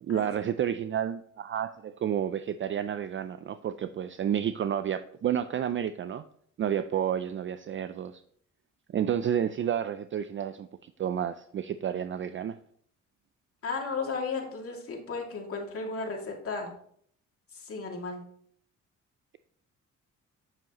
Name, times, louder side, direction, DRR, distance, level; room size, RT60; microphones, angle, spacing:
voice 1, 0.0-6.2 6.6-8.2 8.9-12.6, right 9 dB, 40° right, 11 dB, 0.4 m, -30 dB
voice 2, 13.6-16.7 17.5-18.2, left 4 dB, 50° left, 1 dB, 2.3 m, -34 dB
8.7 x 7.1 x 3.0 m, 0.62 s
cardioid pair, 90°, 30 cm